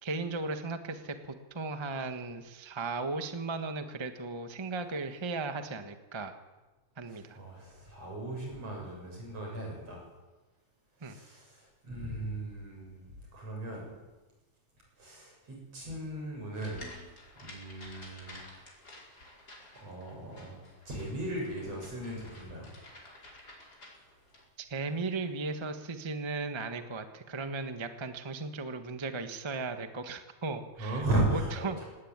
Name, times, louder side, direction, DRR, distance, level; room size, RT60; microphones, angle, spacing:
voice 1, 0.0-1.1 1.5-6.4 7.0-7.4 11.0-11.2 24.7-31.0 31.3-31.8, right 3 dB, 40° right, 7 dB, 0.4 m, -36 dB
voice 2, 7.1-10.0 11.0-13.0 13.3-13.9 15.0-16.9 17.4-18.4 19.8-20.6 20.8-22.7 30.8-31.9, right 1 dB, 55° right, 0 dB, 8.6 m, -36 dB
sound 1, 16.5-24.4, left 1 dB, 30° left, 5.4 m, -52 dB
18.5 x 18.0 x 9.7 m, 1.2 s
omnidirectional pair, 3.4 m